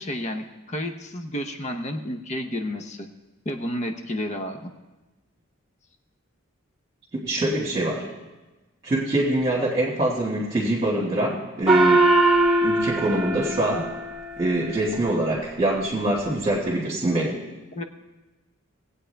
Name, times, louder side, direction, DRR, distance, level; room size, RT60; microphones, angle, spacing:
voice 1, 0.0-3.1 3.4-4.7 17.7-17.8, left 1 dB, 30° left, 6 dB, 0.7 m, -31 dB
voice 2, 7.2-8.0 8.8-12.0 12.6-13.9 14.4-17.4, right 1 dB, 25° right, -7 dB, 1.8 m, -24 dB
Gong, 11.7-14.6, right 2 dB, 5° right, 1.4 m, -21 dB
18.5 x 8.5 x 3.4 m, 1.2 s
head